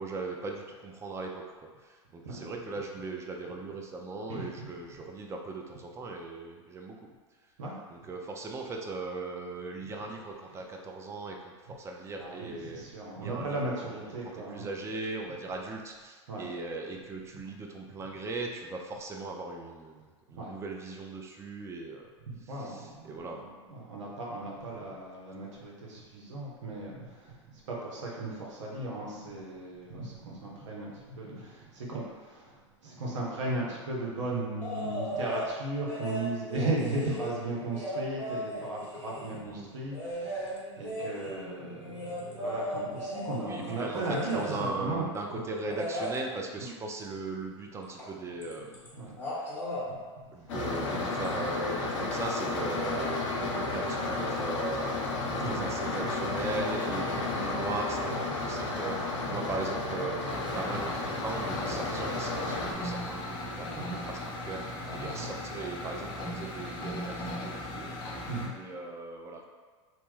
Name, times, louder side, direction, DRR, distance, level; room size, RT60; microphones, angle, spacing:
voice 1, 0.0-7.0 7.9-11.4 11.6-12.8 13.2-14.2 14.5-22.1 22.6-23.5 39.5-39.7 43.4-48.8 49.4-49.5 50.3-54.9 55.3-60.2 60.5-64.7 64.9-67.9 68.4-69.5, right 3 dB, 15° right, 2 dB, 0.4 m, -38 dB
voice 2, 4.3-4.8 7.6-7.7 10.6-10.7 12.2-14.7 16.3-16.5 20.3-20.6 22.2-45.4 46.6-46.7 48.9-49.2 49.9-50.5 55.3-55.9 59.3-59.4 63.7-63.9 64.7-65.5 68.3-68.5, right 2 dB, 75° right, -4 dB, 0.9 m, -36 dB
sound 1, 34.6-35.5 35.9-39.4 39.9-44.8 45.7-46.2 48.0-48.1 48.4-48.9 49.1-49.9 51.2-51.3, equal, 15° left, 0.9 m, -37 dB
sound 2, 50.5-62.7, left 2 dB, 70° left, 0.7 m, -32 dB
sound 3, 60.3-68.5, left 1 dB, 30° left, 0.6 m, -38 dB
2.9 x 2.2 x 3.2 m, 1.5 s
hypercardioid pair, 90°, 16 cm